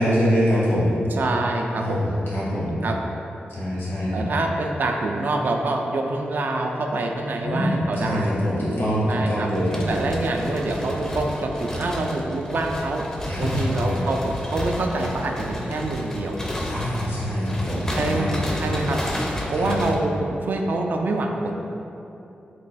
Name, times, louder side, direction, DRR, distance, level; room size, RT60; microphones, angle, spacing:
voice 1, 0.0-1.0 1.8-2.8 3.5-4.3 7.4-9.8 13.3-14.0 16.7-18.4 19.5-19.7, equal, 85° left, -8 dB, 1.1 m, -24 dB
voice 2, 1.1-2.1 2.8-3.0 4.1-8.3 9.1-9.5 9.9-13.1 13.4-16.4 18.0-19.0 19.5-21.6, right 2 dB, 60° right, 2 dB, 0.3 m, -26 dB
sound 1, 9.5-20.0, left 1 dB, 15° left, 0.4 m, -31 dB
3.0 x 2.2 x 4.0 m, 2.9 s
cardioid pair, 80°, 4 cm